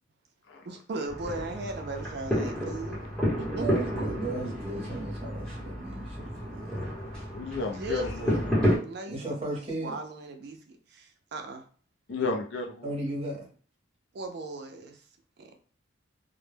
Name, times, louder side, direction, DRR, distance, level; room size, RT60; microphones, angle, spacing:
voice 1, 0.7-3.0 3.4-3.6 7.7-8.4 8.8-11.6 14.1-15.0 15.4-15.5, right 2 dB, 55° right, 4 dB, 0.4 m, -38 dB
sound 1, 1.1-8.8, equal, 5° left, 0.8 m, -31 dB
voice 2, 3.6-6.9 9.0-10.0 12.8-13.5, right 2 dB, 30° right, -2 dB, 0.7 m, -35 dB
voice 3, 7.3-8.4 12.1-12.9, left 3 dB, 60° left, 3 dB, 0.5 m, -32 dB
2.1 x 2.0 x 3.2 m, 0.42 s
head